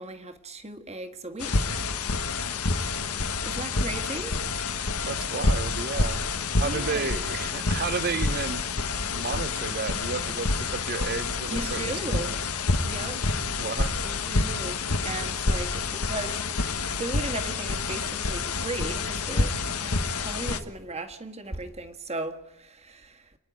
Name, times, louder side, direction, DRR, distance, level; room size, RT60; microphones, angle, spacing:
voice 1, 0.0-1.7 3.4-4.4 6.6-7.1 11.5-12.3 12.8-13.6 14.0-23.4, right 2 dB, 30° right, 1.7 m, -37 dB
sound 1, 1.4-20.6, left 3 dB, 80° left, 1.4 m, -28 dB
voice 2, 5.1-6.3 6.6-8.6 9.1-12.4 13.6-14.0, right 5 dB, 45° right, 0.8 m, -32 dB
29.5 x 10.5 x 9.2 m
head